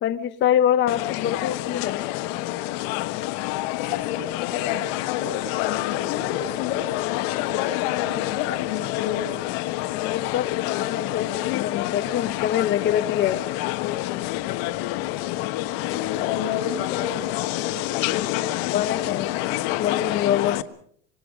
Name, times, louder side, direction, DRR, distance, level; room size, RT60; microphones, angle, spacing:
voice 1, 0.0-2.0 10.0-13.4 18.7-20.6, left 10 dB, 30° left, 9 dB, 0.9 m, -25 dB
sound 1, 0.9-20.6, left 16 dB, 65° left, 1.4 m, -28 dB
voice 2, 3.7-9.4 15.8-18.5, left 9 dB, 85° left, 6 dB, 3.7 m, -31 dB
26.0 x 22.5 x 5.3 m, 0.65 s
cardioid pair, 165°, 37 cm